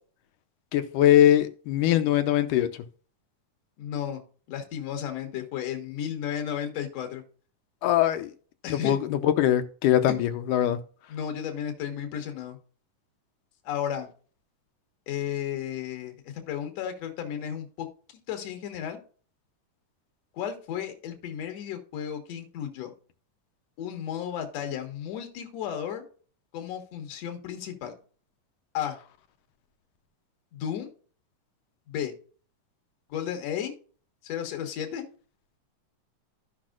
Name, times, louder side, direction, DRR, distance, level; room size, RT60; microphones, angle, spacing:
voice 1, 0.7-2.7 7.8-8.3 8.7-10.8, left 11 dB, 80° left, 2.3 m, -22 dB
voice 2, 3.8-4.2 4.5-7.2 8.6-8.9 11.1-12.6 13.6-14.1 15.1-17.9 18.1-19.0 20.4-22.9 23.8-26.0 26.5-27.9 28.7-29.0 30.5-30.9 31.9-32.1 33.1-33.7 34.2-35.1, left 9 dB, 60° left, 2.4 m, -33 dB
14.0 x 5.9 x 2.4 m
omnidirectional pair, 3.8 m